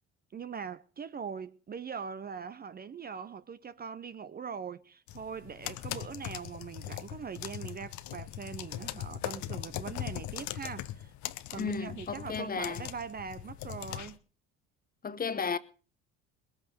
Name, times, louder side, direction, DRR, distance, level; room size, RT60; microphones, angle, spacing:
voice 1, 0.3-11.1 11.5-14.2, right 6 dB, 25° right, 0.7 m, -41 dB
sound 1, 5.1-14.1, left 13 dB, 55° left, 1.0 m, -40 dB
voice 2, 11.6-12.8 15.0-15.6, left 5 dB, 25° left, 1.1 m, -33 dB
20.5 x 8.1 x 6.9 m
hypercardioid pair, 70°, 34 cm